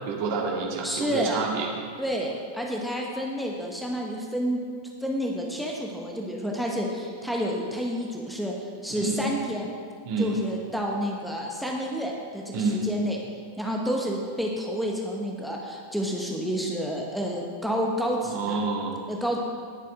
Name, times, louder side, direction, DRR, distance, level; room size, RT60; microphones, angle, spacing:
voice 1, 0.1-1.7 8.9-9.2 10.0-10.3 12.5-12.8 18.3-19.0, right 4 dB, 45° right, -1 dB, 2.1 m, -28 dB
voice 2, 0.8-1.4 2.0-4.6 5.0-9.7 10.2-13.2 13.6-18.6 19.1-19.4, equal, ahead, -1 dB, 1.3 m, -29 dB
18.5 x 7.4 x 3.7 m, 2.1 s
figure-of-eight pair, 90°, 0 cm